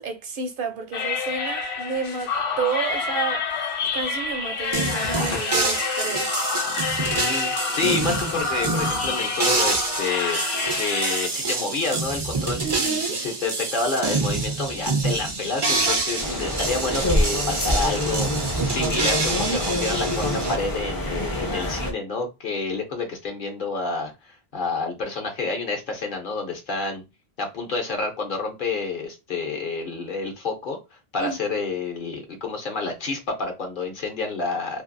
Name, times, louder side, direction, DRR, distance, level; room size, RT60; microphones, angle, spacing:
voice 1, 0.0-3.7 3.9-6.4 12.6-13.2 31.2-31.6, right 5 dB, 60° right, 0.7 m, -30 dB
sound 1, 0.9-11.3, left 5 dB, 85° left, 0.9 m, -28 dB
sound 2, 4.7-20.5, right 3 dB, 35° right, 0.4 m, -27 dB
voice 2, 7.1-27.0 27.4-30.8 31.1-34.8, left 3 dB, 55° left, 0.9 m, -29 dB
sound 3, 16.2-21.9, left 1 dB, 25° left, 0.5 m, -26 dB
2.6 x 2.4 x 2.5 m
omnidirectional pair, 1.0 m